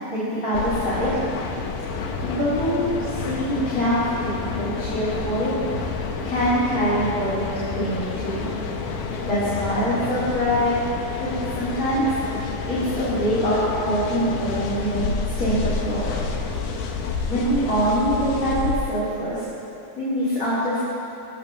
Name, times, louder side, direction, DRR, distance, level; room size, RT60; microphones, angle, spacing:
voice 1, 0.1-1.1 2.2-5.5 6.2-8.5 9.2-10.8 11.2-12.2 12.7-16.1 17.3-19.4 19.9-20.8, equal, 20° left, -12 dB, 3.9 m, -24 dB
sound 1, 0.5-18.8, left 5 dB, 85° left, 3.0 m, -29 dB
22.5 x 16.5 x 3.1 m, 2.8 s
omnidirectional pair, 4.4 m